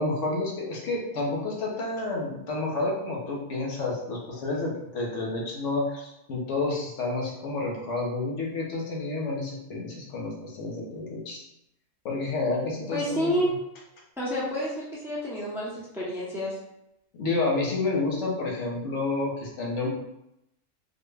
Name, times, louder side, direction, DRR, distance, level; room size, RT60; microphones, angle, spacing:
voice 1, 0.0-11.4 12.0-13.5 17.2-19.9, left 3 dB, 75° left, -2 dB, 1.1 m, -30 dB
voice 2, 12.9-13.5 14.2-16.6, equal, 5° right, -6 dB, 0.7 m, -29 dB
4.0 x 2.2 x 3.3 m, 0.84 s
omnidirectional pair, 1.2 m